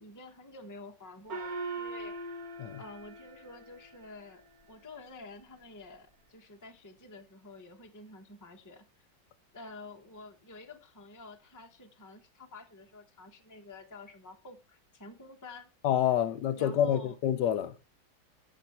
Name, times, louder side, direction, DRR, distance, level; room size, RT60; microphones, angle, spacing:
voice 1, 0.0-2.4 2.8-8.8 9.5-15.7 16.6-17.2, left 2 dB, 10° left, 1.0 m, -49 dB
Gong, 1.3-4.2, right 3 dB, 50° right, 1.8 m, -40 dB
voice 2, 15.8-17.7, left 10 dB, 65° left, 1.4 m, -27 dB
14.5 x 6.5 x 4.4 m
omnidirectional pair, 2.1 m